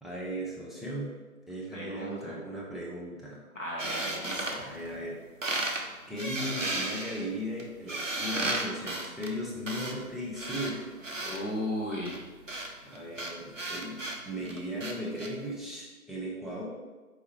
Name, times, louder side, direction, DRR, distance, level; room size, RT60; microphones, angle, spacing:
voice 1, 0.0-1.2 1.5-3.4 4.6-5.7 6.1-10.9 12.8-14.0 14.3-16.6, equal, ahead, -5 dB, 0.5 m, -37 dB
voice 2, 1.7-2.4 3.5-4.7 11.2-12.2, left 1 dB, 55° left, -4 dB, 1.0 m, -36 dB
sound 1, 3.8-5.1 5.4-5.8 6.2-11.4 12.0-15.3, right 2 dB, 60° right, 0.5 m, -34 dB
4.5 x 3.2 x 2.9 m, 1.3 s
figure-of-eight pair, 175°, 45 cm